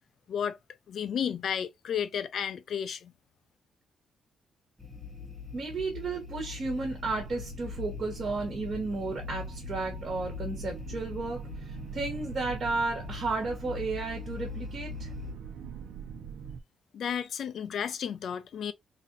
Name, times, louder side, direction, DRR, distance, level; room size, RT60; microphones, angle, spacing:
voice 1, 0.9-3.1 16.9-18.7, left 8 dB, 55° left, 0.5 m, -32 dB
sound 1, 4.8-15.3, left 6 dB, ahead, 0.7 m, -42 dB
voice 2, 5.5-15.1, right 3 dB, 40° right, 1.4 m, -33 dB
sound 2, 6.5-16.6, right 7 dB, 85° right, 0.5 m, -44 dB
3.9 x 2.7 x 2.5 m
wide cardioid pair, 165°, 0 cm